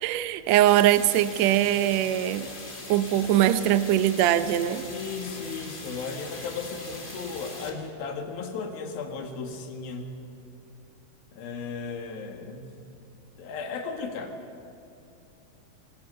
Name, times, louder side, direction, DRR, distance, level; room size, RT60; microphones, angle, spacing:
voice 1, 0.0-2.5 2.9-4.9, right 12 dB, 90° right, 12 dB, 1.5 m, -22 dB
sound 1, 0.7-7.7, left 2 dB, 20° left, 1.5 m, -41 dB
voice 2, 4.9-10.2 11.3-12.8 13.4-14.4, left 5 dB, 85° left, 3 dB, 3.5 m, -35 dB
25.5 x 20.0 x 5.4 m, 2.8 s
omnidirectional pair, 4.1 m